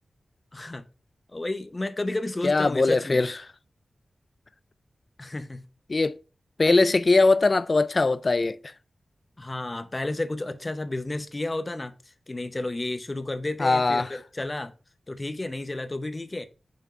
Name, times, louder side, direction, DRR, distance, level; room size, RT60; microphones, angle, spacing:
voice 1, 0.5-0.9 1.3-3.2 5.2-5.6 9.4-11.9 12.3-14.7 15.1-16.5, left 2 dB, 30° left, 0.7 m, -31 dB
voice 2, 2.4-3.3 5.9-6.2 6.6-8.6 13.6-14.1, left 3 dB, 45° left, 0.3 m, -21 dB
5.7 x 3.5 x 5.0 m
cardioid pair, 65°, 0 cm